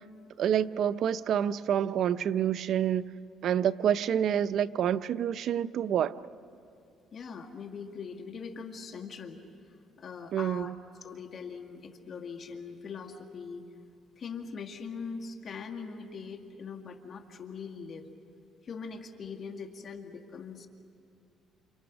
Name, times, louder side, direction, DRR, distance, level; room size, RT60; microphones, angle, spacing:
voice 1, 0.4-3.1 3.4-6.1 10.3-10.7, right 9 dB, 65° right, 14 dB, 0.6 m, -27 dB
voice 2, 7.1-9.4 9.7-10.7 11.0-13.7 14.2-18.1 18.6-20.7, left 5 dB, 50° left, 4 dB, 2.2 m, -41 dB
29.5 x 27.5 x 6.1 m, 2.5 s
cardioid pair, 95°, 0 cm